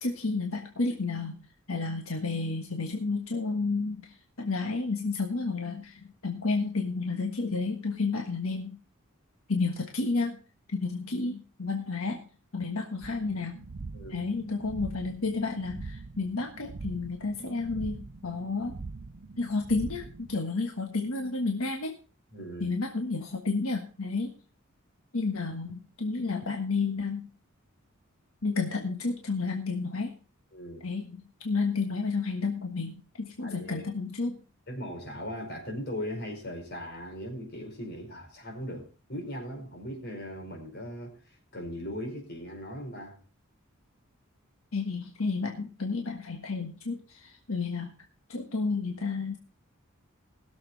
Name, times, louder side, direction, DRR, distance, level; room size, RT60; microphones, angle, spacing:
voice 1, 0.0-1.4 1.7-8.8 9.5-10.4 10.7-12.2 12.5-13.6 14.1-18.8 19.4-21.9 22.6-24.3 25.1-27.3 28.4-30.1 30.8-34.4 44.7-47.9 48.3-49.4, left 3 dB, 80° left, 1.5 m, -31 dB
sound 1, 13.0-20.4, right 3 dB, 50° right, 0.6 m, -43 dB
voice 2, 22.3-22.7 30.5-30.8 33.4-33.8 34.7-41.1 41.5-43.2, equal, 50° left, 4.8 m, -38 dB
20.0 x 7.2 x 4.0 m
head